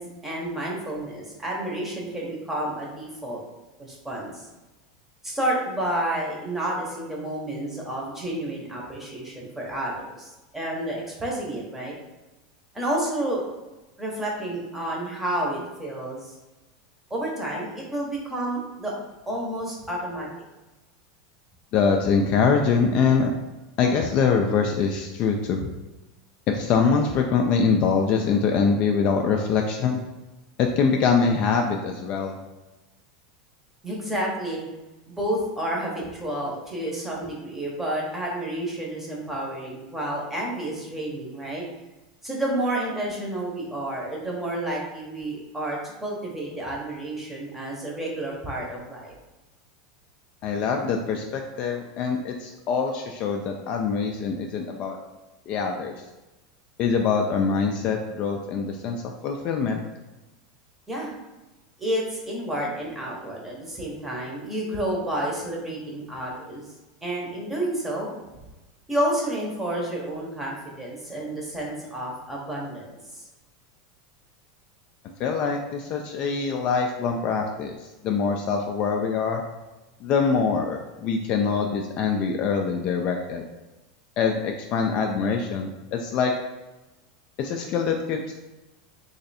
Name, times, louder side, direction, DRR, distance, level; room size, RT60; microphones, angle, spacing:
voice 1, 0.0-3.4 3.8-4.5 5.2-11.9 12.7-13.5 14.0-16.4 17.1-18.9 19.3-20.3 33.8-34.7 35.1-41.6 42.2-49.1 60.9-61.1 61.8-66.6 67.0-68.1 68.9-72.9 73.1-73.2, right 1 dB, 5° right, -2 dB, 0.8 m, -30 dB
voice 2, 21.7-23.3 23.8-25.6 26.5-30.0 30.6-32.4 50.4-55.0 55.5-55.9 56.8-59.8 75.2-77.7 78.0-79.4 80.0-83.4 84.2-86.3 87.4-88.3, left 5 dB, 35° left, 2 dB, 0.3 m, -24 dB
3.1 x 2.6 x 4.1 m, 1.1 s
supercardioid pair, 160°, 3 cm